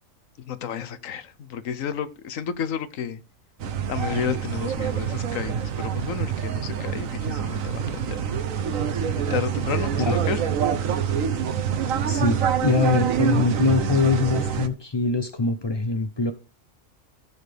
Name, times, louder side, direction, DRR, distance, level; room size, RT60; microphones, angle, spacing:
voice 1, 0.4-3.2 3.9-8.4 9.3-10.5, left 8 dB, 75° left, 1.2 m, -31 dB
sound 1, 3.6-14.7, right 8 dB, 75° right, 1.3 m, -26 dB
voice 2, 12.1-16.3, left 4 dB, 35° left, 0.4 m, -23 dB
14.5 x 6.8 x 3.4 m
omnidirectional pair, 1.4 m